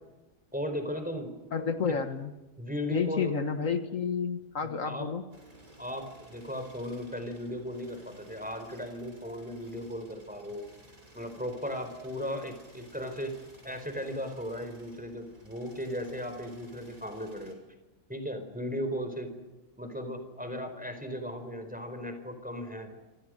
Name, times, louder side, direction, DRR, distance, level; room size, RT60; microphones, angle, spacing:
voice 1, 0.5-1.3 2.6-3.3 4.6-5.1 5.8-10.7 11.1-13.4 13.6-17.6 18.1-19.3 19.8-22.9, equal, 5° right, 7 dB, 4.5 m, -36 dB
voice 2, 1.5-2.3 2.9-5.2, left 6 dB, 70° left, 8 dB, 1.9 m, -30 dB
air hammer half close, 5.3-17.5, right 1 dB, 85° right, 7.1 m, -56 dB
27.0 x 27.0 x 6.5 m, 1.1 s
omnidirectional pair, 1.4 m